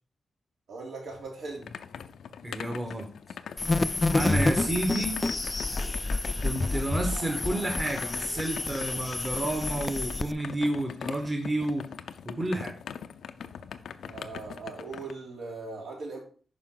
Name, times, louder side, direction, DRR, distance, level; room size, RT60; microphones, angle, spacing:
voice 1, 0.7-1.7 14.0-16.2, right 3 dB, 75° right, -2 dB, 3.2 m, -39 dB
sound 1, 1.1-15.1, left 7 dB, 90° left, 0.5 m, -42 dB
voice 2, 2.4-3.1 4.1-5.2 6.4-11.8 12.2-12.7, right 1 dB, 20° right, 2 dB, 1.1 m, -30 dB
sound 2, 3.6-10.3, left 2 dB, 15° left, 0.3 m, -29 dB
9.0 x 5.6 x 3.8 m, 0.41 s
wide cardioid pair, 175°, 0 cm